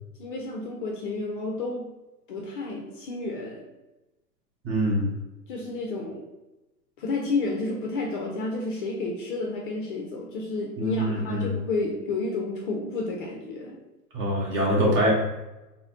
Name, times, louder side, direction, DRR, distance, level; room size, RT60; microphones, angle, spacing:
voice 1, 0.2-1.9 2.3-3.6 5.5-6.2 7.0-13.8, left 3 dB, 35° left, -1 dB, 0.5 m, -31 dB
voice 2, 4.6-5.1 10.8-11.5 14.1-15.1, equal, 30° right, -4 dB, 1.3 m, -24 dB
4.0 x 2.2 x 3.7 m, 1.0 s
figure-of-eight pair, 110°, 48 cm